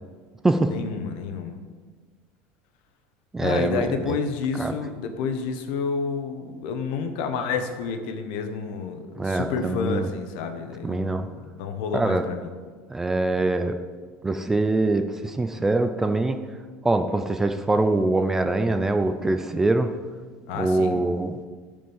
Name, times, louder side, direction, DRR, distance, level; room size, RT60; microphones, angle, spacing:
voice 1, 0.7-1.6 3.4-12.5 20.5-21.0, left 5 dB, 70° left, 7 dB, 1.3 m, -30 dB
voice 2, 3.3-4.2 4.6-4.8 9.2-10.1 10.8-11.3 11.9-12.2 12.9-13.8 14.2-16.4 16.8-19.9 20.5-21.4, right 2 dB, 10° right, 7 dB, 0.4 m, -23 dB
13.0 x 5.2 x 7.1 m, 1.5 s
cardioid pair, 180°, 5 cm